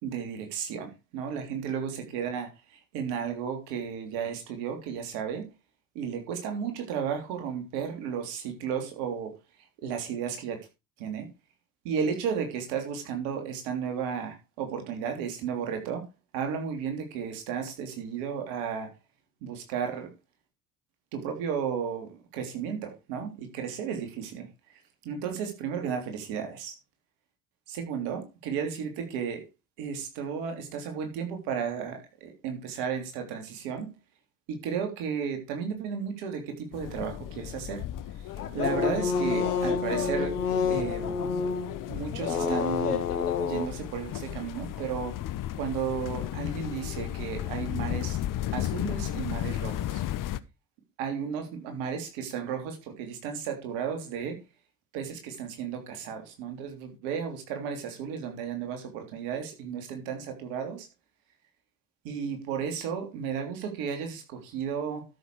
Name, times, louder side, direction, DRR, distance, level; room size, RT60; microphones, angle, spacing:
voice 1, 0.0-5.5 6.0-9.3 9.8-10.6 11.0-11.3 11.8-16.1 16.3-18.9 19.4-20.1 21.1-24.5 25.0-26.7 27.7-29.4 29.8-33.9 34.5-37.8 38.2-38.3 38.5-40.4 40.7-41.2 41.9-43.1 43.4-45.2 45.5-48.2 48.5-50.0 51.0-54.4 54.9-60.9 62.0-65.0, right 7 dB, 65° right, 3.4 m, -33 dB
sound 1, 36.7-50.4, left 12 dB, 45° left, 0.9 m, -35 dB
sound 2, 38.4-43.7, left 5 dB, 80° left, 1.6 m, -28 dB
12.5 x 7.1 x 4.7 m
figure-of-eight pair, 55°, 45 cm